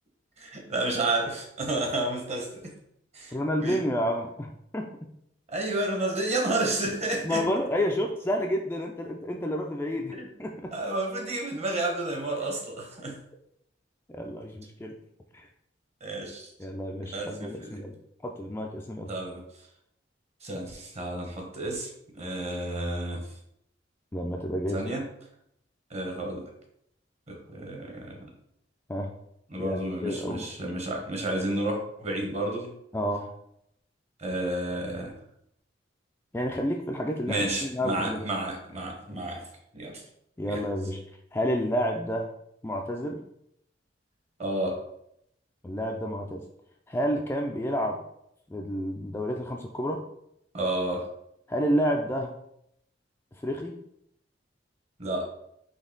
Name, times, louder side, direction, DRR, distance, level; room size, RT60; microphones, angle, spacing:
voice 1, 0.4-2.7 3.1-3.8 5.5-7.4 10.1-10.3 10.7-13.2 16.0-16.5 17.1-17.8 19.1-19.4 20.4-23.2 24.7-25.0 25.9-26.5 27.3-28.3 29.5-32.7 34.2-35.1 37.3-39.4 39.7-40.0 40.4-40.6 44.4-44.8 50.5-51.0 55.0-55.2, right 2 dB, 35° right, 1 dB, 1.0 m, -31 dB
voice 2, 3.3-4.9 7.2-10.8 14.1-15.0 15.3-15.5 16.6-17.9 18.2-19.1 24.1-24.9 28.9-29.1 29.6-30.5 32.9-33.3 36.3-38.2 40.4-41.0 41.3-42.3 42.6-43.2 45.6-46.4 46.9-48.0 48.5-50.0 51.5-52.4 53.4-53.8, equal, 10° left, 2 dB, 0.3 m, -30 dB
4.0 x 3.2 x 3.8 m, 0.75 s
head